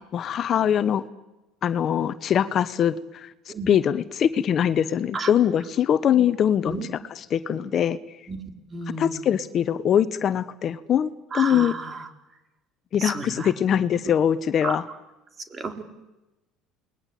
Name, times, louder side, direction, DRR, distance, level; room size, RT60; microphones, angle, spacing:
voice 1, 0.1-1.0 1.6-6.8 7.3-8.0 9.0-11.7 12.9-14.8, left 9 dB, 50° left, 14 dB, 1.1 m, -22 dB
voice 2, 8.7-9.3 11.3-12.1 13.0-13.5 14.6-14.7 15.5-15.8, right 3 dB, 30° right, 6 dB, 4.0 m, -32 dB
29.0 x 21.0 x 8.5 m, 1.0 s
supercardioid pair, 85°, 0 cm